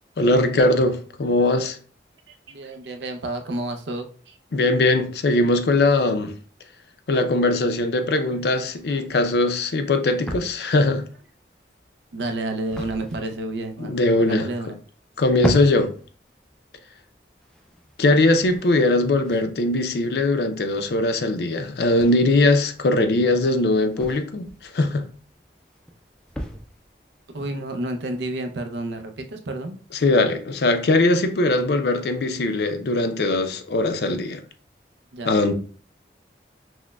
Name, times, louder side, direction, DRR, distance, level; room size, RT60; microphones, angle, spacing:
voice 1, 0.2-1.8 4.5-6.3 7.1-11.0 13.8-14.5 15.2-15.9 18.0-24.5 24.7-25.1 30.0-34.4 35.3-35.5, left 2 dB, 65° left, 0.5 m, -20 dB
voice 2, 2.3-4.4 8.9-9.0 12.1-14.8 27.3-29.8 35.1-35.3, right 2 dB, 80° right, 0.5 m, -30 dB
sound 1, 8.7-28.2, equal, 5° left, 0.3 m, -38 dB
6.0 x 2.1 x 2.2 m
head